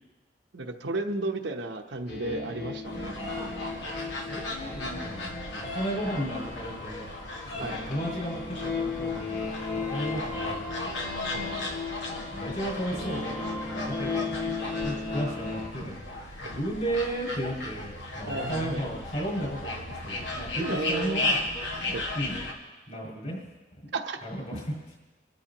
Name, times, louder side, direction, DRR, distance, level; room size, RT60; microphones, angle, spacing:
voice 1, 0.5-3.7 7.6-7.8 11.3-11.5 18.2-18.9 20.6-21.3 21.9-22.0 23.9-24.2 24.5-24.6, right 2 dB, 80° right, 3 dB, 1.0 m, -33 dB
sound 1, 2.1-15.7, left 4 dB, 60° left, 2.5 m, -35 dB
sound 2, 2.8-22.5, left 2 dB, 85° left, 1.8 m, -36 dB
voice 2, 4.0-7.1 7.5-11.0 11.4-11.7 12.3-14.5 14.8-21.4 21.7-21.9 22.1-22.4 22.9-23.4 23.8-24.0 24.2-24.9, right 1 dB, 40° left, -3 dB, 6.4 m, -34 dB
26.0 x 13.5 x 3.0 m, 1.2 s
head